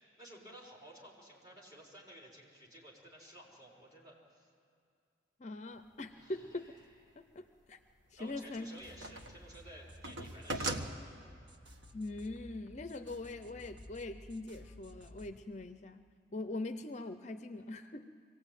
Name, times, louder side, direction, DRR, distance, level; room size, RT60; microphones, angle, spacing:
voice 1, 0.0-4.5 6.1-7.2 8.2-10.9, equal, 20° right, -3 dB, 4.4 m, -54 dB
voice 2, 5.4-6.8 7.2-7.8 8.1-8.8 11.9-16.0 16.3-18.2, left 2 dB, 40° left, 9 dB, 0.5 m, -42 dB
sound 1, 6.3-6.4 8.1-9.4 9.7-10.9, right 2 dB, 90° right, 1.3 m, -39 dB
sound 2, 8.8-15.4, left 1 dB, 70° right, 1.7 m, -55 dB
24.0 x 16.5 x 9.1 m, 2.3 s
head